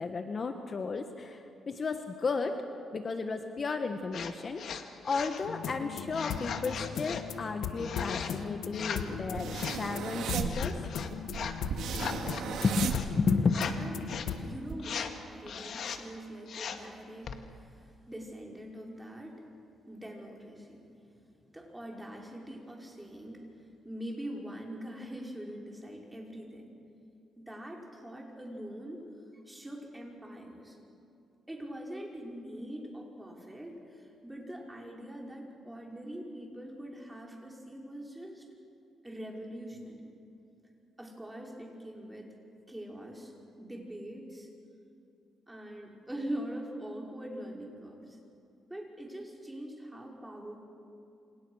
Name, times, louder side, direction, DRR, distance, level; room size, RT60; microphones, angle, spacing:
voice 1, 0.0-2.5 2.9-10.8 12.6-13.6, left 4 dB, 40° left, 6 dB, 1.4 m, -33 dB
sound 1, 4.1-4.3 4.6-5.4 6.1-7.2 7.8-8.3 8.7-9.1 9.5-9.9 10.5-11.6 11.9-13.1 13.5-13.7 14.0-14.3 14.8-15.1 15.5-16.0 16.5-16.9 17.2-17.4, left 7 dB, 60° left, 1.8 m, -38 dB
sound 2, 5.4-14.6, left 7 dB, 85° left, 1.3 m, -38 dB
sound 3, 9.2-13.7 14.1-14.7, right 6 dB, 75° right, 2.1 m, -35 dB
voice 2, 13.8-14.1 14.4-19.4 19.9-23.4 23.8-26.7 27.4-29.1 29.3-30.8 31.5-38.4 39.0-40.2 41.0-42.3 42.7-43.3 43.6-44.5 45.5-48.2 48.7-50.7, right 1 dB, 10° right, -1 dB, 5.3 m, -43 dB
28.0 x 27.5 x 6.4 m, 2.6 s
cardioid pair, 115°, 0 cm